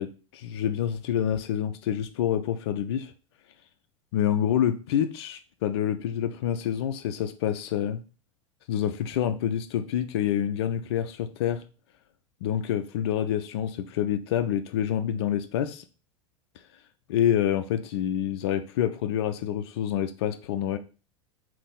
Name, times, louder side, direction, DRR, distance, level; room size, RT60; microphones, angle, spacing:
voice 1, 0.0-3.1 4.1-8.0 8.7-11.6 12.4-15.8 17.1-20.8, left 10 dB, 55° left, 0.4 m, -27 dB
3.5 x 2.7 x 3.7 m
figure-of-eight pair, 85°, 16 cm